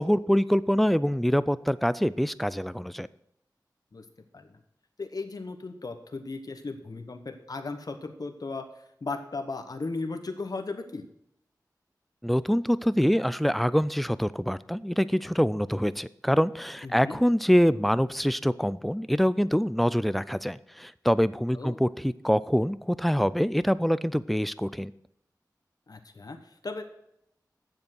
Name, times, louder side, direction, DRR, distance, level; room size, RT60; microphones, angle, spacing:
voice 1, 0.0-3.1 12.2-24.9, equal, ahead, 16 dB, 0.4 m, -25 dB
voice 2, 5.0-11.0 16.8-17.2 21.5-21.8 25.9-26.8, left 3 dB, 60° left, 6 dB, 1.0 m, -36 dB
7.8 x 7.0 x 6.3 m, 0.76 s
wide cardioid pair, 55°, 7 cm